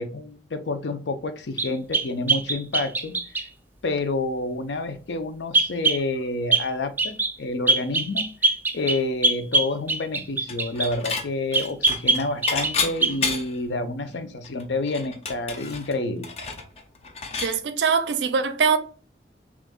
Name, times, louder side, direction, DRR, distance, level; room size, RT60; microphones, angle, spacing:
voice 1, 0.0-3.1 3.8-8.3 8.7-16.3, left 2 dB, 85° left, 0.5 m, -29 dB
sound 1, 1.6-3.5 5.5-6.0 6.5-6.7 7.0-7.3 7.7-10.9 11.5-12.8 13.0-13.3, right 3 dB, 10° right, 0.3 m, -23 dB
Dishes pots and pans / Chink clink, 10.5-11.3 11.5-13.7 14.1-14.2 14.4-17.6, left 4 dB, 35° left, 0.5 m, -30 dB
voice 2, 17.4-18.8, right 6 dB, 85° right, 0.5 m, -22 dB
6.1 x 2.5 x 2.2 m
head